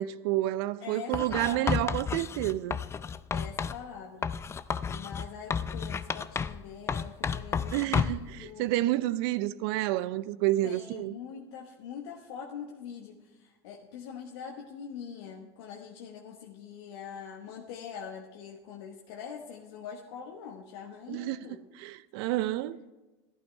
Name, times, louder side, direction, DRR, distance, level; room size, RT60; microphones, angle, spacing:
voice 1, 0.0-2.8 7.7-11.2 21.1-21.4 21.8-22.9, right 15 dB, 65° right, 0.6 m, -29 dB
voice 2, 0.8-1.8 3.3-4.3 4.9-8.7 10.6-21.6, left 7 dB, 75° left, 1.2 m, -43 dB
Writing, 1.1-3.8 4.2-6.6 6.9-8.3, left 6 dB, 20° left, 0.4 m, -32 dB
14.0 x 11.5 x 3.3 m
supercardioid pair, 105°, 14 cm